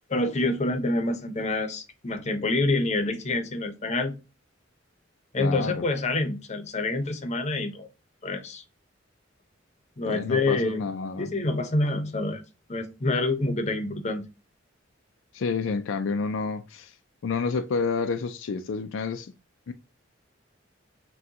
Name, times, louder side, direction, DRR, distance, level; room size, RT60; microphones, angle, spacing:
voice 1, 0.1-4.1 5.3-7.9 8.2-8.6 10.0-10.9 11.2-12.4 12.7-14.3, left 2 dB, 35° left, 0.7 m, -27 dB
voice 2, 5.4-5.8 10.1-11.3 15.3-17.0 17.2-19.3 19.7-19.8, left 4 dB, 75° left, 0.4 m, -29 dB
6.0 x 2.3 x 2.7 m
head